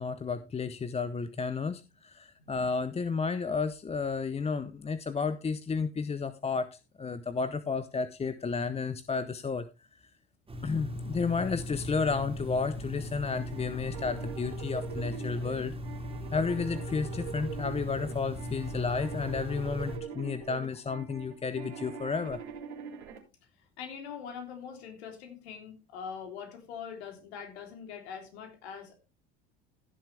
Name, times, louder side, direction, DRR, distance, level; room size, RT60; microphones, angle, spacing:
voice 1, 0.0-10.0 10.6-15.8 16.3-22.4, left 5 dB, 20° left, 13 dB, 0.7 m, -32 dB
sound 1, 10.5-20.0, left 1 dB, 15° right, 3.2 m, -38 dB
sound 2, 13.3-23.2, right 6 dB, 85° right, 3.7 m, -43 dB
voice 2, 23.6-29.0, left 7 dB, 75° left, 5 dB, 3.5 m, -43 dB
16.0 x 7.4 x 3.3 m, 0.27 s
hypercardioid pair, 75°, 33 cm